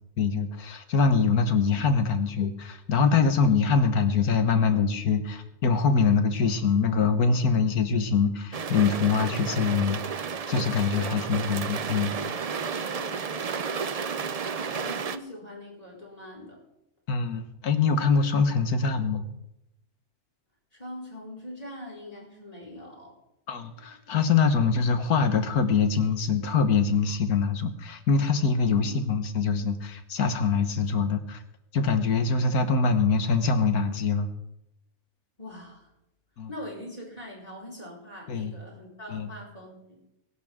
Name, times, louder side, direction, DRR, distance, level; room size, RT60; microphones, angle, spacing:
voice 1, 0.2-10.0 10.5-12.1 17.1-19.2 23.5-31.4 31.7-34.3 36.4-36.5 38.3-38.5 39.1-39.3, left 5 dB, 85° left, 9 dB, 1.8 m, -24 dB
sound 1, 8.5-15.2, right 6 dB, 75° right, 0.3 m, -32 dB
voice 2, 10.9-11.4 12.7-13.7 14.8-16.6 20.7-23.1 28.5-29.1 35.4-35.9 36.5-40.0, left 1 dB, 25° left, -3 dB, 5.3 m, -42 dB
22.0 x 11.5 x 3.7 m, 0.86 s
omnidirectional pair, 1.6 m